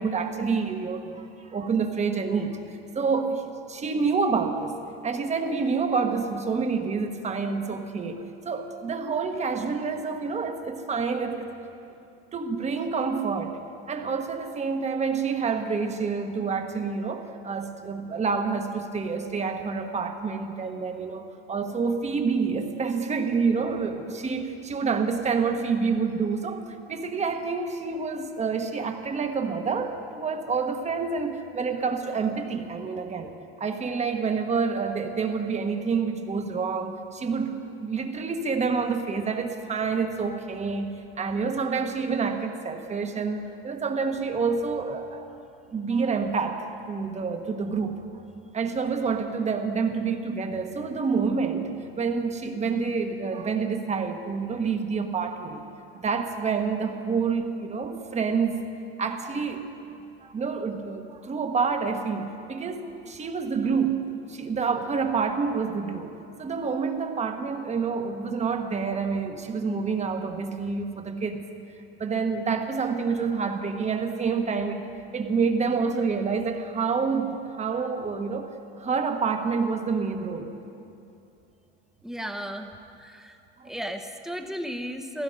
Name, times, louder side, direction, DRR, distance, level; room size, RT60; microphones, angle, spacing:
voice 1, 0.0-2.6 2.9-11.5 12.3-13.6 13.9-33.3 33.6-45.3 45.7-48.0 48.5-55.6 55.9-58.6 59.0-59.7 60.2-66.1 66.4-71.4 72.0-80.5 83.6-83.7, right 5 dB, 20° right, 6 dB, 1.3 m, -28 dB
voice 2, 82.0-82.7 83.0-83.4 83.6-85.2, equal, ahead, 4 dB, 1.0 m, -34 dB
16.0 x 15.5 x 5.5 m, 2.7 s
supercardioid pair, 115°, 30 cm